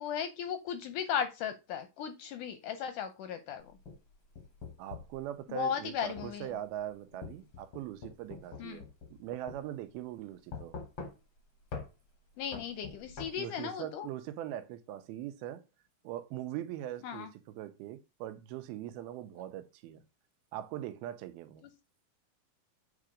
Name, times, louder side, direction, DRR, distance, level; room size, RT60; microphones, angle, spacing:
voice 1, 0.0-3.7 5.5-6.5 8.6-8.8 12.4-14.1 17.0-17.3, left 8 dB, 80° left, 1.9 m, -36 dB
sound 1, 3.6-5.2 6.2-6.3 7.2-9.2 9.5-9.6 10.5-11.4 11.7-11.9 12.5-13.3, left 5 dB, 65° left, 1.2 m, -44 dB
voice 2, 4.8-8.8 9.2-10.8 13.4-15.6 16.0-20.0 20.5-21.6, right 12 dB, 90° right, 2.6 m, -41 dB
8.4 x 3.9 x 4.9 m
omnidirectional pair, 4.2 m